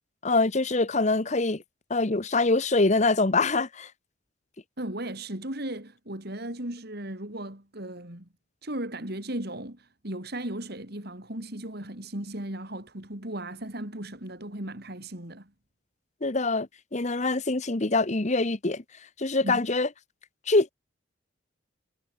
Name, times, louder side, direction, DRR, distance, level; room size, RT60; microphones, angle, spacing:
voice 1, 0.2-1.6 1.9-3.9 16.2-18.8 19.2-19.9 20.5-20.7, left 3 dB, 35° left, 1.1 m, -24 dB
voice 2, 4.8-8.3 8.6-15.5 19.4-19.6, right 1 dB, 55° right, 4.2 m, -36 dB
head